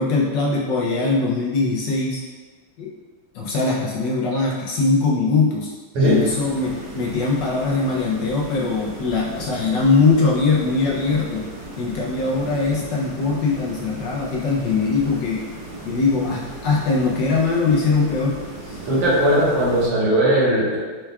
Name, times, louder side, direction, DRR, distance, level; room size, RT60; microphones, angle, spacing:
voice 1, 0.0-2.2 2.8-2.9 3.3-5.7 6.0-11.5 11.8-15.4 15.8-18.4 18.6-18.8, left 4 dB, 70° left, -3 dB, 1.1 m, -21 dB
sound 1, 6.0-19.9, right 2 dB, 65° right, 1.7 m, -37 dB
voice 2, 18.9-20.8, right 1 dB, 90° right, -6 dB, 2.1 m, -18 dB
4.6 x 4.3 x 2.3 m, 1.4 s
omnidirectional pair, 2.4 m